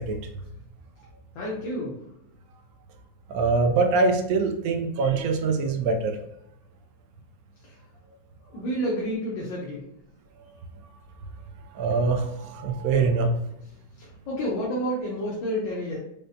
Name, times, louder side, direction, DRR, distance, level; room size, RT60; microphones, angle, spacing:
voice 1, 1.3-2.0 8.4-9.9 14.0-16.0, equal, 75° left, -4 dB, 1.4 m, -30 dB
voice 2, 3.3-6.2 11.7-13.3, right 4 dB, 80° right, 4 dB, 0.8 m, -23 dB
5.1 x 2.1 x 2.6 m, 0.82 s
omnidirectional pair, 2.1 m